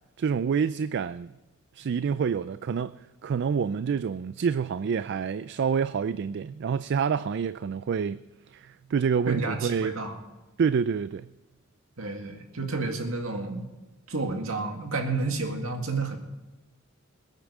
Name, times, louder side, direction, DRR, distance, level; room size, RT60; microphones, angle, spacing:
voice 1, 0.2-1.3 1.7-8.2 8.5-10.0 10.6-11.3, right 6 dB, 55° right, 0.3 m, -27 dB
voice 2, 9.3-10.2 12.0-13.6 14.1-16.2, right 3 dB, 70° right, 2.0 m, -30 dB
21.0 x 9.1 x 4.9 m
head